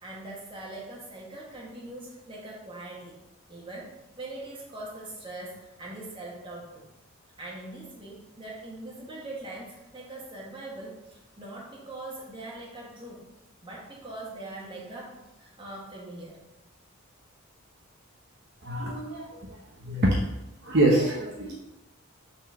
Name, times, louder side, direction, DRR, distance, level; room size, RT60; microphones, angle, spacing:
voice 1, 0.0-3.2 3.5-6.9 7.4-13.2 13.6-16.4, right 2 dB, 25° right, -4 dB, 1.8 m, -42 dB
voice 2, 18.6-20.2 20.6-21.6, right 1 dB, 50° right, -3 dB, 0.9 m, -25 dB
6.0 x 4.5 x 5.8 m, 0.98 s
head